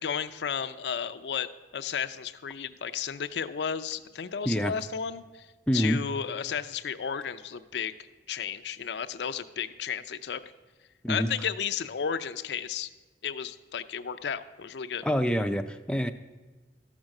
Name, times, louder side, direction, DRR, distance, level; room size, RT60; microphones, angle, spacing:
voice 1, 0.0-1.5 1.7-5.5 5.7-7.9 8.3-10.4 11.1-12.9 13.2-15.0, left 7 dB, 80° left, 10 dB, 0.5 m, -33 dB
voice 2, 5.7-6.0 11.0-11.3 15.0-16.1, equal, 5° left, 6 dB, 0.3 m, -26 dB
13.0 x 6.0 x 6.4 m, 1.2 s
head